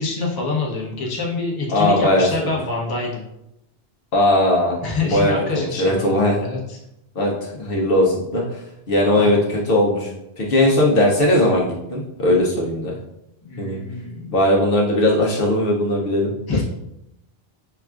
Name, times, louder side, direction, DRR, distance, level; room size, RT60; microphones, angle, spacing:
voice 1, 0.0-3.2 4.8-6.8 9.2-9.3 13.4-14.3 16.5-16.6, left 3 dB, 25° left, -4 dB, 0.7 m, -26 dB
voice 2, 1.7-2.5 4.1-6.4 7.2-8.6 8.9-10.1 10.4-12.9 13.6-13.8 14.3-16.6, left 1 dB, 60° left, -3 dB, 0.9 m, -19 dB
5.6 x 2.3 x 2.4 m, 0.86 s
omnidirectional pair, 1.2 m